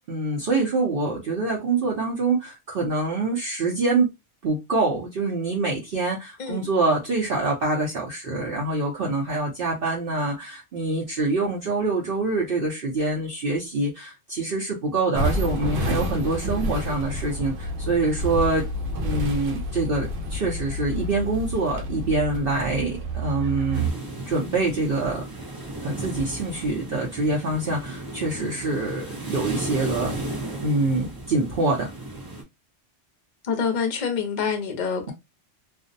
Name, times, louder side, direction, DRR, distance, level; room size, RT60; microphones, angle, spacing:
voice 1, 0.1-4.1 4.4-18.6 19.0-23.9 24.3-25.2 25.8-30.1 30.6-31.9, right 3 dB, 55° right, 0.8 m, -25 dB
sound 1, 15.1-23.9, equal, 85° right, 1.0 m, -29 dB
sound 2, 23.7-32.4, right 2 dB, 25° right, 0.5 m, -35 dB
voice 2, 33.4-35.1, left 6 dB, 50° left, 0.6 m, -26 dB
2.5 x 2.0 x 2.5 m
omnidirectional pair, 1.2 m